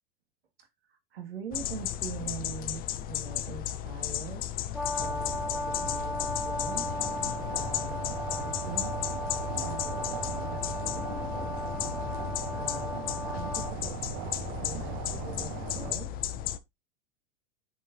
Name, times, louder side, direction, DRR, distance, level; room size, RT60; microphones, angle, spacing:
voice 1, 0.6-4.5 4.7-6.9 7.5-9.0 9.5-11.6 12.0-16.1, right 5 dB, 90° right, 1.9 m, -44 dB
sound 1, 1.5-16.6, left 12 dB, 30° left, 0.5 m, -35 dB
Brass instrument, 4.7-13.8, left 2 dB, ahead, 0.8 m, -36 dB
sound 2, 5.0-15.9, right 17 dB, 45° right, 0.4 m, -40 dB
7.9 x 4.5 x 2.7 m
hypercardioid pair, 120°, 29 cm